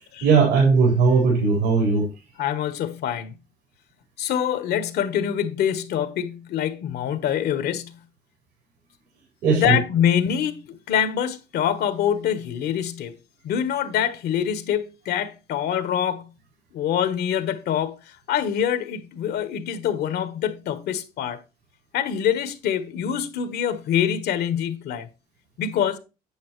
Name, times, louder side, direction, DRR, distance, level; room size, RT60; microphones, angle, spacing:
voice 1, 0.2-2.1 9.4-9.8, right 4 dB, 85° right, 4.3 m, -18 dB
voice 2, 2.4-3.3 4.2-8.0 9.5-13.1 13.4-16.3 16.7-21.4 21.9-25.1 25.6-26.0, left 9 dB, 70° left, 1.2 m, -25 dB
8.6 x 8.0 x 3.1 m
cardioid pair, 110°, 17 cm